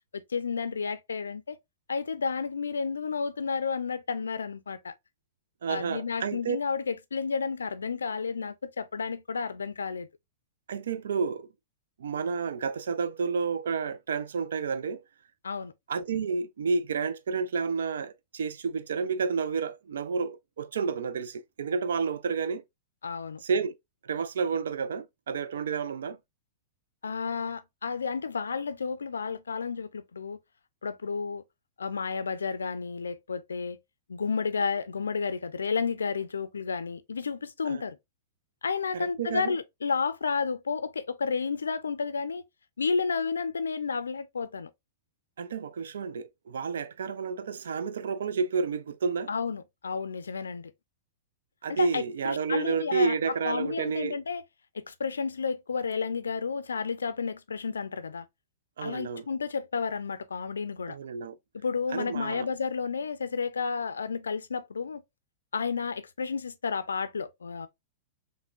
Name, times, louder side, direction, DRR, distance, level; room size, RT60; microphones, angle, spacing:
voice 1, 0.1-1.6 1.9-4.9 5.7-10.1 15.4-15.7 23.0-23.4 27.0-30.4 30.8-31.4 31.8-33.8 34.1-38.0 38.6-42.4 42.8-44.7 49.3-50.7 51.7-53.1 53.4-54.4 54.7-58.3 58.8-61.0 61.5-65.0 65.5-67.7, left 5 dB, 80° left, 0.4 m, -31 dB
voice 2, 5.6-6.6 10.7-11.5 12.0-15.0 15.9-22.6 23.4-23.7 24.0-26.2 37.6-37.8 38.9-39.6 45.4-49.3 51.6-54.2 58.8-59.2 60.9-61.4 61.9-62.5, right 5 dB, 70° right, 0.3 m, -30 dB
5.6 x 2.1 x 2.3 m
figure-of-eight pair, 100°, 0 cm